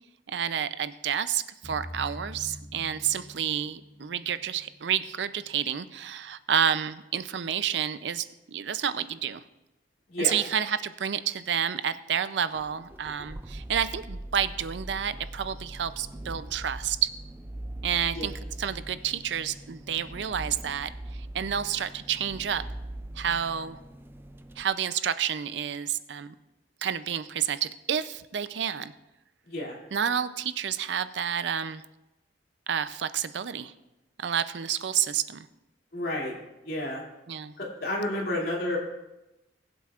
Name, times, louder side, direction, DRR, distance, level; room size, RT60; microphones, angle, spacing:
voice 1, 0.3-9.4 10.2-17.1 17.8-18.3 18.6-20.9 21.3-22.6 23.2-23.8 24.6-26.3 26.8-28.9 29.9-31.8 32.7-33.7 34.2-35.5 37.3-37.5, right 8 dB, 75° right, 13 dB, 0.5 m, -29 dB
sound 1, 1.6-5.4, equal, 40° left, 1.7 m, -44 dB
sound 2, 12.5-24.6, right 1 dB, 15° right, 0.4 m, -41 dB
voice 2, 29.5-29.8 35.9-36.3 36.6-37.0 37.6-38.8, left 1 dB, 60° left, -2 dB, 2.6 m, -30 dB
21.0 x 7.7 x 2.4 m, 0.97 s
head